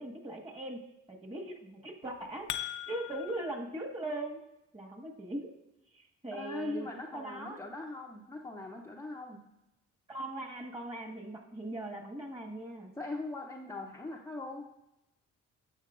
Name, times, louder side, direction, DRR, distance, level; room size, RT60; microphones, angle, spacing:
voice 1, 0.0-2.5 2.9-4.4 4.7-5.5 5.9-6.9 7.1-7.6 10.1-12.9, right 1 dB, 20° right, 1 dB, 1.5 m, -40 dB
sound 1, 2.0-3.5, left 12 dB, 75° left, 0.6 m, -39 dB
voice 2, 6.3-9.4 13.0-14.6, left 2 dB, 10° left, -1 dB, 0.6 m, -40 dB
11.5 x 6.8 x 2.5 m, 0.92 s
cardioid pair, 90°, 30 cm